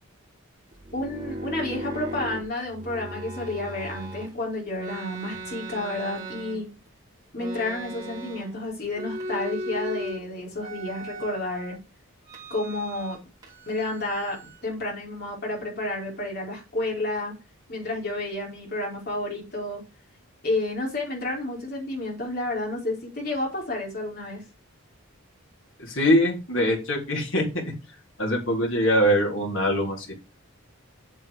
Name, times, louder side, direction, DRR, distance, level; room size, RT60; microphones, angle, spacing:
sound 1, 0.7-4.3 4.8-6.9 7.4-8.6 8.9-10.2 10.6-11.8 12.3-13.2 13.4-14.6, right 1 dB, 20° right, 3.5 m, -37 dB
voice 1, 0.9-6.7 7.3-11.8 12.5-13.2 13.7-17.3 17.7-19.8 20.4-24.4, left 2 dB, 45° left, -1 dB, 4.8 m, -30 dB
voice 2, 25.8-27.4 28.2-30.1, equal, 65° left, -2 dB, 3.7 m, -23 dB
8.0 x 7.4 x 5.1 m, 0.28 s
head